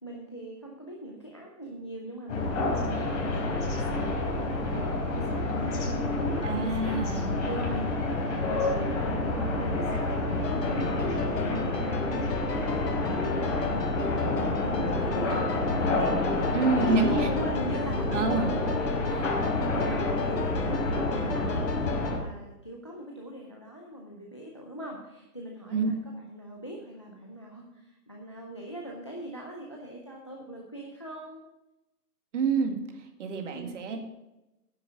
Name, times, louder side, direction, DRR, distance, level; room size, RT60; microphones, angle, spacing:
voice 1, 0.0-12.0 13.0-13.8 14.6-15.4 15.8-18.9 19.5-31.4 33.5-33.8, right 1 dB, 20° left, 0 dB, 0.4 m, -41 dB
sound 1, 2.3-22.2, left 2 dB, 50° left, 4.0 m, -28 dB
voice 2, 6.4-7.3 16.5-17.3 18.1-18.5 19.1-19.4 25.7-25.9 32.3-32.8 33.2-34.0, right 4 dB, 50° right, 4 dB, 2.0 m, -27 dB
sound 2, 10.4-22.1, left 5 dB, 80° left, 1.5 m, -36 dB
10.0 x 7.8 x 6.0 m, 0.96 s
hypercardioid pair, 155°, 48 cm